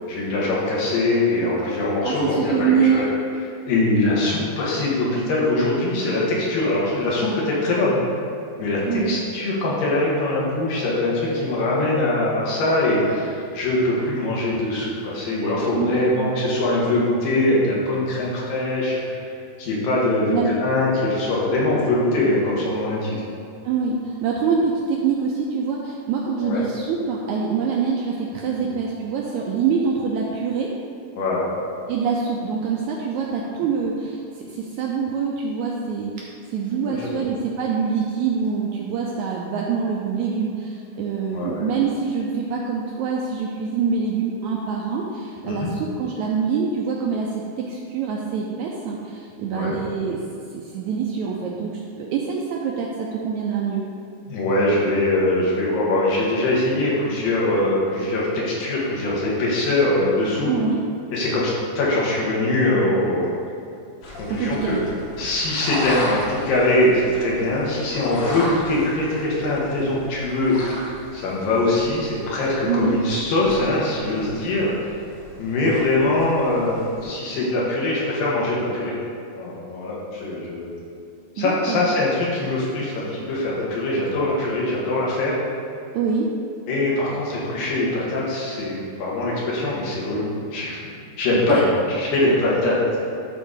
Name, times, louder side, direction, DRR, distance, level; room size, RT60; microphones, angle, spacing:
voice 1, 0.1-3.1 3.7-8.0 8.6-19.2 19.6-23.1 26.4-26.6 31.2-31.5 36.8-37.2 41.3-41.6 45.5-45.7 49.5-49.7 54.3-60.5 61.1-63.4 64.3-64.8 65.2-70.9 71.1-74.8 75.4-78.9 79.4-80.8 81.4-85.4 86.7-90.8 91.2-91.6 92.0-92.8, left 2 dB, 80° left, -5 dB, 3.2 m, -22 dB
voice 2, 2.0-3.0 8.9-9.2 15.8-16.3 20.3-20.6 23.6-30.7 31.9-50.2 50.5-53.8 60.5-60.8 64.3-64.8 72.6-73.0 81.4-81.9 85.9-86.3 91.5-91.7, right 5 dB, 80° right, -2 dB, 1.7 m, -25 dB
sound 1, 64.0-77.0, left 1 dB, 55° left, 1.9 m, -36 dB
12.0 x 4.1 x 3.8 m, 2.4 s
omnidirectional pair, 3.9 m